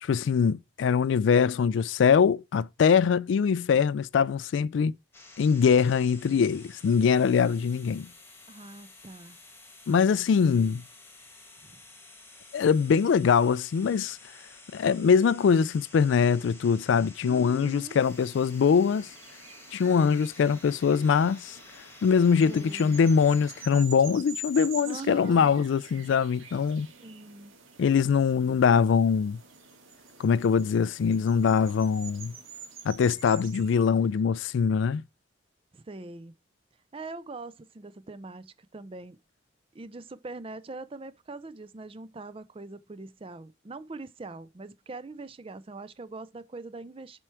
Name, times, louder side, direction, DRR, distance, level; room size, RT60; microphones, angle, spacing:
voice 1, 0.0-4.9 5.4-8.1 9.9-10.8 12.5-14.2 14.7-19.1 19.7-21.6 22.0-26.9 27.8-29.4 30.2-32.3 32.8-35.0, left 6 dB, 65° left, 0.3 m, -23 dB
sound 1, 5.1-23.6, left 2 dB, 10° left, 1.4 m, -51 dB
voice 2, 8.5-9.4 11.7-11.8 17.2-18.0 22.4-23.0 24.9-25.6 27.0-27.5 35.7-36.3 36.9-39.2 39.7-47.2, right 3 dB, 25° right, 0.4 m, -42 dB
sound 2, 18.0-34.2, right 3 dB, 85° right, 2.0 m, -47 dB
7.6 x 4.6 x 4.5 m
head